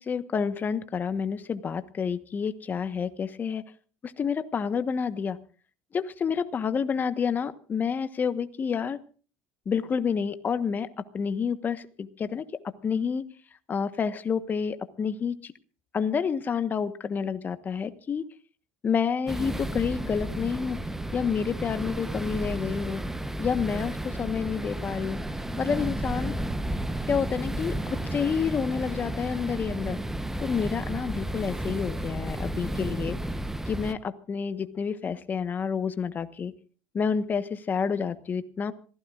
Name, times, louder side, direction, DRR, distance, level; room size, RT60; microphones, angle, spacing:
voice 1, 0.0-3.6 4.0-5.4 5.9-9.0 9.6-10.9 11.1-12.4 12.8-13.2 13.7-15.5 15.9-18.2 18.8-20.8 21.1-23.0 23.4-25.2 25.6-26.3 27.1-30.0 30.4-33.2 33.7-36.5 36.9-38.7, left 6 dB, 30° left, 11 dB, 1.2 m, -29 dB
sound 1, 19.3-33.9, right 1 dB, 5° right, 0.9 m, -32 dB
26.5 x 15.5 x 2.5 m, 0.40 s
supercardioid pair, 105°, 6 cm